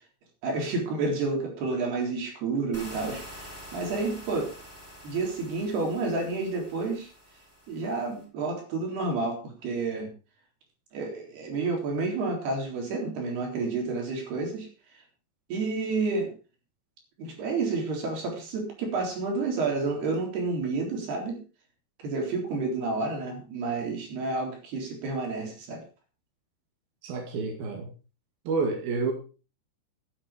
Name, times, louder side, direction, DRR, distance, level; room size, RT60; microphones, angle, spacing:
voice 1, 0.4-4.5 5.0-7.1 7.7-10.1 10.9-14.7 15.5-16.3 17.2-21.4 22.0-25.8, right 3 dB, 90° right, 2 dB, 5.9 m, -30 dB
sound 1, 2.7-8.2, equal, 5° right, 6.0 m, -46 dB
voice 2, 27.0-27.9 28.5-29.1, right 4 dB, 70° right, 1 dB, 4.1 m, -29 dB
13.0 x 10.0 x 5.0 m, 0.34 s
omnidirectional pair, 4.5 m